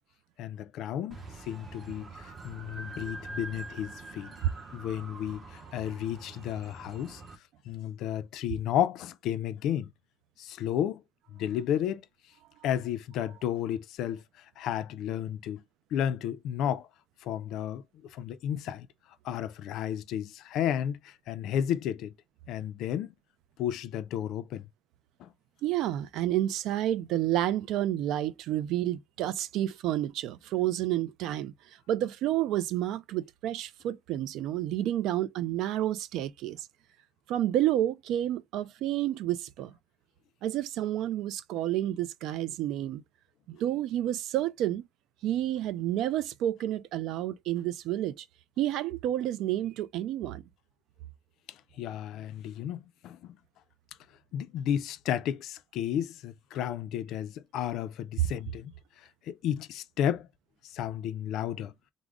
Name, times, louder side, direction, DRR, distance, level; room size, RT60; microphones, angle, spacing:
voice 1, 0.4-4.3 4.7-7.2 7.7-9.9 10.4-11.0 11.3-12.0 12.6-15.6 15.9-16.9 17.2-18.9 19.2-22.1 22.5-23.1 23.6-24.7 25.2-25.3 51.5-53.4 54.3-58.7 59.3-60.3 60.6-61.7, left 10 dB, 60° left, 0.3 m, -32 dB
sound 1, 1.1-7.4, right 3 dB, 25° right, 0.7 m, -45 dB
voice 2, 25.6-31.5 31.9-36.7 37.3-39.7 40.4-43.0 43.5-44.9 45.2-48.3 48.6-50.4, right 13 dB, 65° right, 0.3 m, -30 dB
3.6 x 2.0 x 3.4 m
cardioid pair, 175°, 0 cm